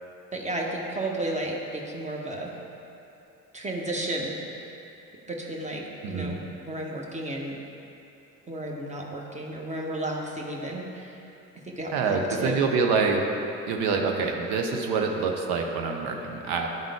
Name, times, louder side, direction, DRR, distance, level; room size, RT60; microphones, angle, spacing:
voice 1, 0.3-2.5 3.5-4.7 5.3-7.6 8.5-11.2 11.5-12.6, right 1 dB, 15° right, -1 dB, 1.1 m, -33 dB
voice 2, 6.0-6.3 11.9-13.2 13.7-16.7, right 4 dB, 65° right, 2 dB, 0.8 m, -26 dB
10.5 x 3.6 x 3.6 m, 2.8 s
hypercardioid pair, 55°, 40 cm